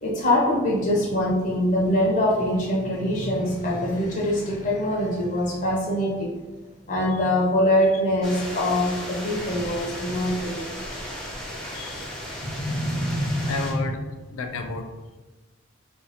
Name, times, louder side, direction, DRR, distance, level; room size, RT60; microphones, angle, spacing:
voice 1, 0.0-6.3 6.9-10.7 12.4-13.7, left 1 dB, 40° left, -4 dB, 0.7 m, -24 dB
sound 1, 8.2-13.7, equal, 5° left, 0.5 m, -35 dB
voice 2, 11.7-12.1 13.5-14.0 14.3-14.8, left 3 dB, 85° left, 5 dB, 0.4 m, -31 dB
2.6 x 2.5 x 4.1 m, 1.2 s
head